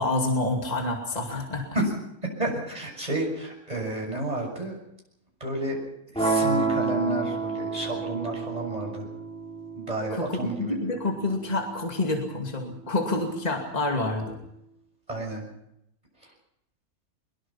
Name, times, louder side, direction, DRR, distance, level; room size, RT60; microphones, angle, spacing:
voice 1, 0.0-1.7 10.1-14.4, left 2 dB, 25° left, 2 dB, 2.6 m, -28 dB
voice 2, 2.2-4.8 5.4-5.8 6.1-9.1 9.8-10.8 15.1-15.4, right 1 dB, 25° right, 0 dB, 6.7 m, -30 dB
sound 1, 6.1-12.2, right 4 dB, 5° left, 6.0 m, -30 dB
23.0 x 22.5 x 5.8 m, 0.79 s
omnidirectional pair, 1.6 m